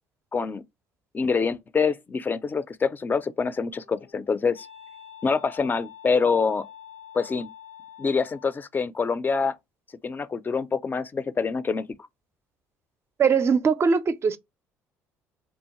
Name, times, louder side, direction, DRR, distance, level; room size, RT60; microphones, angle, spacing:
voice 1, 0.3-0.6 1.1-4.7 5.2-6.6 7.1-7.5 8.0-9.6 10.0-11.9, left 5 dB, 30° left, 0.4 m, -25 dB
Wind instrument woodwind instrument, 3.3-8.6, left 9 dB, 80° left, 0.8 m, -47 dB
voice 2, 13.2-14.4, right 5 dB, 40° right, 0.4 m, -21 dB
2.7 x 2.1 x 2.9 m
hypercardioid pair, 60°, 7 cm